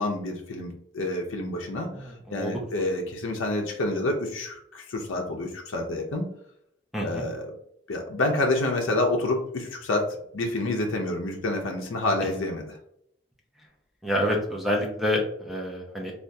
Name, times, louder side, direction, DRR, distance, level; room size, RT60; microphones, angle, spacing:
voice 1, 0.0-6.3 7.0-7.5 7.9-12.8, left 2 dB, 80° left, 2 dB, 0.5 m, -28 dB
voice 2, 1.9-2.6 6.9-7.3 14.0-16.1, equal, ahead, -1 dB, 0.6 m, -28 dB
3.4 x 2.4 x 2.6 m, 0.71 s
head